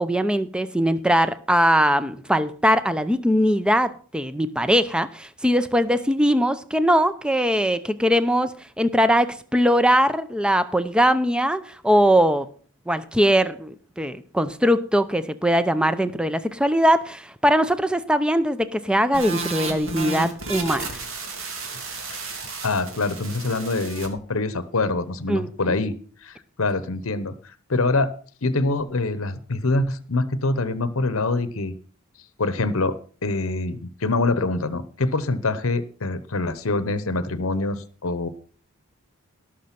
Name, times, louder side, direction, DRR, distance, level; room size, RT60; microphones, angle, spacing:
voice 1, 0.0-12.5 12.9-21.0 25.3-25.7, equal, 5° right, 12 dB, 0.7 m, -21 dB
sound 1, 19.1-24.1, right 3 dB, 65° right, 3.3 m, -32 dB
voice 2, 22.6-25.9 26.2-28.1 28.4-31.7 32.4-32.9 33.2-38.3, left 2 dB, 70° left, 14 dB, 0.9 m, -25 dB
17.5 x 6.5 x 5.9 m, 0.43 s
head